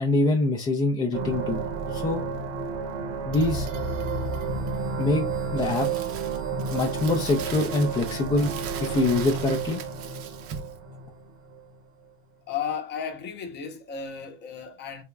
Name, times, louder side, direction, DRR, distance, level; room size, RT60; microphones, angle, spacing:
voice 1, 0.0-1.6 1.9-2.2 3.3-3.7 5.0-5.2 5.5-5.9 6.7-8.5 8.8-9.8, left 2 dB, 15° left, 0.3 m, -24 dB
sound 1, 1.1-11.7, right 4 dB, 75° right, 0.9 m, -31 dB
Crumpling crinkling, 5.6-10.8, right 7 dB, 40° right, 0.6 m, -40 dB
voice 2, 12.5-15.0, left 7 dB, 30° left, 0.7 m, -34 dB
3.5 x 3.0 x 2.2 m
supercardioid pair, 120°, 37 cm